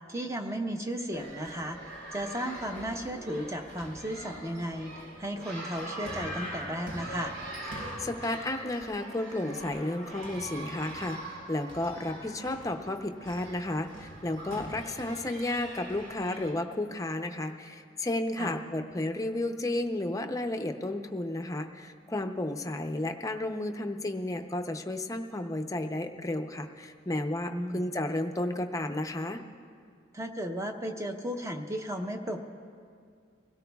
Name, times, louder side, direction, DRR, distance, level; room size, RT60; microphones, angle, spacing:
voice 1, 0.1-1.8 2.1-7.4 18.4-18.6 27.5-27.8 30.1-32.4, equal, 15° right, 4 dB, 0.8 m, -34 dB
sound 1, 1.1-16.5, right 1 dB, 85° right, 3.5 m, -42 dB
voice 2, 7.7-29.4, left 1 dB, 20° left, 5 dB, 0.6 m, -32 dB
24.0 x 17.0 x 2.3 m, 2.2 s
head